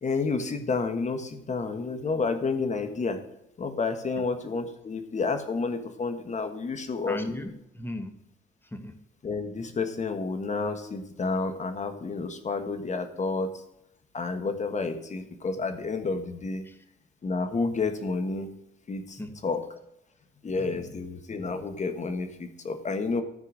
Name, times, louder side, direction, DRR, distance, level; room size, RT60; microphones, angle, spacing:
voice 1, 0.0-3.2 3.6-7.2 9.2-13.5 14.1-16.6 17.2-18.5 18.9-19.6 20.4-23.2, left 4 dB, 35° left, 8 dB, 1.4 m, -30 dB
voice 2, 7.1-8.2 8.6-9.0 16.6-16.8 19.2-19.4 20.6-20.9, left 1 dB, 10° left, 7 dB, 1.3 m, -37 dB
13.5 x 4.5 x 6.3 m, 0.83 s
cardioid pair, 90°, 20 cm